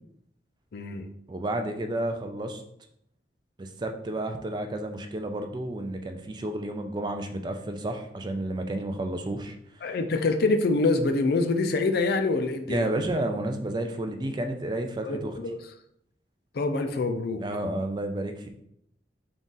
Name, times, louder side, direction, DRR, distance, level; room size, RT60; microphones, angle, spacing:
voice 1, 0.7-1.1 9.8-12.9 15.1-15.5 16.5-17.4, left 3 dB, 60° left, 7 dB, 0.4 m, -25 dB
voice 2, 1.3-2.6 3.6-9.9 12.7-15.4 17.4-18.5, right 1 dB, 25° right, 6 dB, 0.3 m, -31 dB
3.9 x 2.4 x 3.8 m, 0.74 s
head